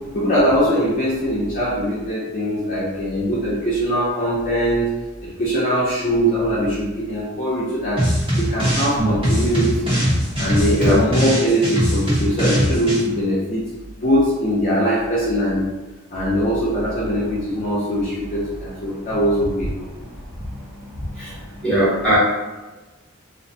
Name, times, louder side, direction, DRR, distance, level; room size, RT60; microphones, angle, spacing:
voice 1, 0.1-4.9 5.2-8.0 8.4-9.9 10.4-13.6 14.0-15.7 16.1-19.9, equal, 35° left, -7 dB, 0.5 m, -21 dB
sound 1, 8.0-8.9 9.2-13.0, equal, 25° right, 0.8 m, -21 dB
voice 2, 21.6-22.2, right 1 dB, 5° left, -9 dB, 0.9 m, -18 dB
2.5 x 2.1 x 2.6 m, 1.2 s
head